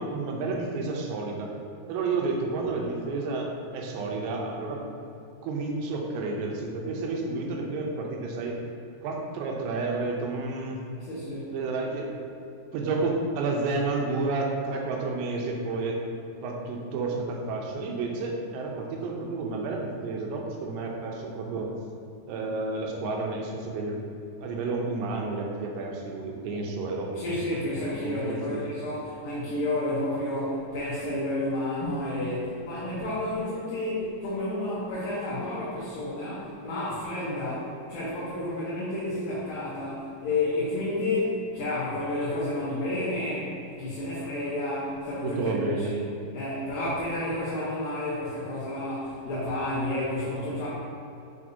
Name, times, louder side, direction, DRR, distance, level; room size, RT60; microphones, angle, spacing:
voice 1, 0.0-1.5 1.9-4.8 5.4-8.6 9.0-10.8 11.5-12.1 12.7-16.0 16.4-21.7 22.3-24.0 24.4-27.4 27.8-28.6 45.2-45.9, right 3 dB, 85° right, 0 dB, 2.9 m, -31 dB
voice 2, 11.0-11.5 27.1-46.0 46.3-50.7, left 1 dB, 70° left, -9 dB, 2.4 m, -31 dB
6.8 x 6.0 x 2.7 m, 2.6 s
omnidirectional pair, 5.0 m